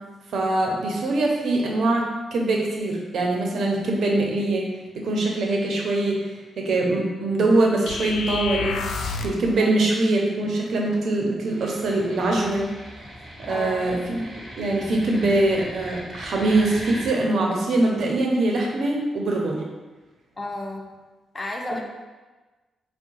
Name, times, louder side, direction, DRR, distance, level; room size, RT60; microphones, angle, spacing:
voice 1, 0.3-4.7 4.9-8.8 9.2-12.7 13.4-14.2 14.6-19.6, right 2 dB, 70° right, 0 dB, 0.8 m, -23 dB
sound 1, 7.9-9.5, left 4 dB, 75° left, 0.3 m, -29 dB
sound 2, 11.5-17.1, equal, 5° right, 1.4 m, -39 dB
voice 2, 13.5-13.9 20.4-20.9 21.3-21.8, left 2 dB, 25° left, 2 dB, 0.5 m, -32 dB
4.6 x 2.3 x 4.6 m, 1.2 s
cardioid pair, 105°, 0 cm